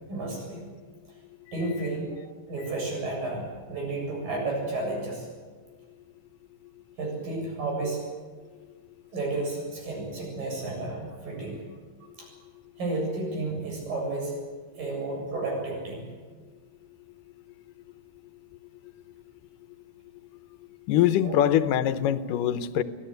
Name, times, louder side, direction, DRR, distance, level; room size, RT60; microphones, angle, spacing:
voice 1, 0.1-0.6 1.5-2.2 2.5-5.3 7.0-8.0 9.1-11.6 12.2-12.3 12.8-14.4 14.8-16.1 21.2-21.4, right 2 dB, 85° right, 0 dB, 9.2 m, -32 dB
voice 2, 20.9-22.8, left 11 dB, 80° left, 12 dB, 2.4 m, -23 dB
25.0 x 17.5 x 8.1 m, 1.4 s
omnidirectional pair, 3.9 m